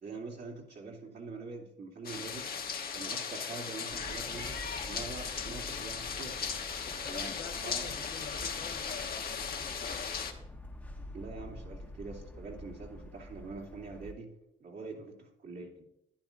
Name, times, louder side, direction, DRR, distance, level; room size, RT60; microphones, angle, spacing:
voice 1, 0.0-2.5 2.9-6.6 7.0-7.3 7.6-7.9 9.4-9.5 11.1-14.3 14.6-15.8, right 3 dB, 55° right, -3 dB, 2.9 m, -44 dB
sound 1, 2.0-10.3, left 6 dB, 50° left, 1.2 m, -37 dB
sound 2, 3.9-14.1, left 1 dB, 5° left, 1.1 m, -47 dB
voice 2, 6.8-10.1 14.9-15.0, left 6 dB, 70° left, 3 dB, 1.4 m, -46 dB
12.0 x 10.5 x 2.6 m, 0.85 s
cardioid pair, 90°, 20 cm